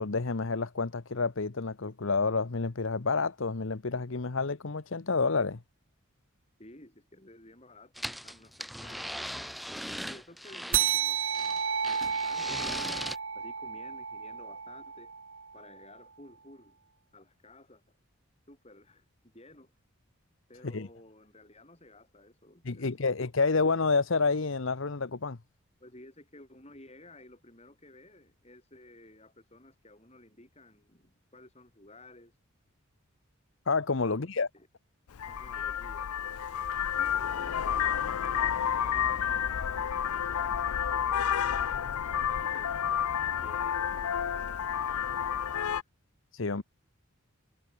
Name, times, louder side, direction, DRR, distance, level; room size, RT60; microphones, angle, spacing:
voice 1, 0.0-5.6 20.7-20.9 22.6-25.4 33.7-34.5 46.3-46.6, left 4 dB, 60° left, 0.9 m, -29 dB
voice 2, 6.6-9.7 10.0-11.2 11.9-12.9 13.3-15.1 15.5-16.8 17.1-18.0 18.5-19.7 20.5-23.1 25.8-32.3 34.0-34.7 35.2-36.7 37.0-37.9 38.8-42.7 43.4-45.7, left 1 dB, 30° left, 7.9 m, -54 dB
sound 1, 8.0-11.0 11.3-13.2, equal, ahead, 0.8 m, -39 dB
sound 2, 10.7-15.6, right 8 dB, 60° right, 2.3 m, -32 dB
Vehicle horn car horn honking, 35.1-45.8, left 9 dB, 85° left, 0.5 m, -30 dB
head